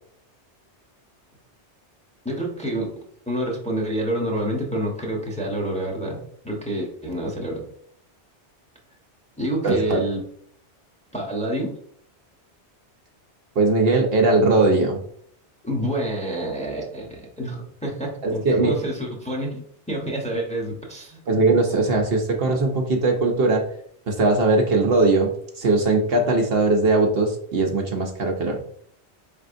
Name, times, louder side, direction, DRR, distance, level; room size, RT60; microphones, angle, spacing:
voice 1, 2.2-2.9 3.3-6.2 6.4-7.6 9.4-10.2 11.1-11.7 15.6-21.2, right 1 dB, 5° left, -2 dB, 0.8 m, -28 dB
voice 2, 9.6-10.0 13.6-15.0 18.2-18.7 21.3-23.6 24.1-25.3 25.6-28.6, right 3 dB, 60° right, 2 dB, 0.8 m, -20 dB
5.2 x 3.4 x 2.5 m, 0.64 s
omnidirectional pair, 1.2 m